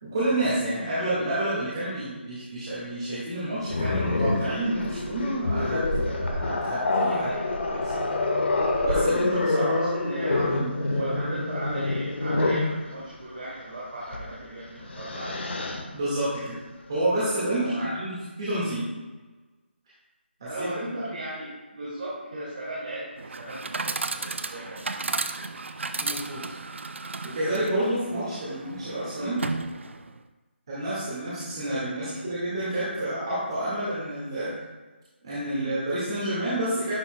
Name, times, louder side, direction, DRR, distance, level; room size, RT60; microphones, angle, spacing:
voice 1, 0.0-7.3 7.8-7.9 8.8-9.8 10.3-10.8 11.0-11.4 15.9-16.6 16.9-18.9 20.4-20.7 26.0-26.4 27.2-29.4 30.7-34.5 35.2-36.9, right 1 dB, 25° right, -10 dB, 1.8 m, -29 dB
Growling, 3.7-12.7 14.1-14.3 14.7-15.8, left 2 dB, 75° left, 1.2 m, -27 dB
voice 2, 7.1-7.5 9.6-10.6 10.9-15.6 17.6-18.0 20.5-25.5 28.4-28.5 28.9-29.3 32.0-32.2 35.5-35.7, right 1 dB, 50° right, -8 dB, 2.4 m, -36 dB
Chatter / Coin (dropping), 23.2-30.2, right 3 dB, 90° right, 0.5 m, -34 dB
11.0 x 5.8 x 2.2 m, 1.3 s
hypercardioid pair, 180°, 6 cm